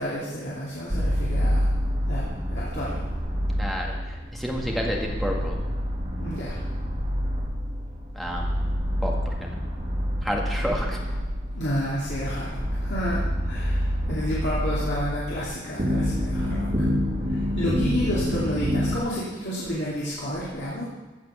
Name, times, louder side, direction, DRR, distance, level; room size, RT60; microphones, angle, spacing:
voice 1, 0.0-1.7 2.1-3.0 6.2-6.6 11.5-16.7 17.3-20.8, equal, 65° left, -8 dB, 2.7 m, -30 dB
sound 1, 0.9-19.0, equal, 35° right, 3.1 m, -27 dB
voice 2, 3.6-5.6 8.1-8.6 9.0-9.1 9.4-9.5 10.2-11.0, equal, ahead, -1 dB, 1.9 m, -30 dB
15.0 x 6.0 x 6.9 m, 1.2 s
head